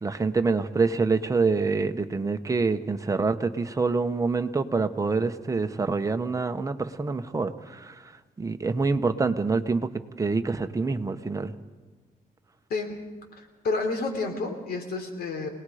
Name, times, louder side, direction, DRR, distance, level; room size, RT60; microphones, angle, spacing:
voice 1, 0.0-8.0 8.4-9.9 10.2-11.5, right 4 dB, 20° right, 7 dB, 1.1 m, -26 dB
voice 2, 13.3-15.5, left 3 dB, 90° left, 4 dB, 3.4 m, -30 dB
27.5 x 19.0 x 5.0 m, 1.4 s
cardioid pair, 110°, 16 cm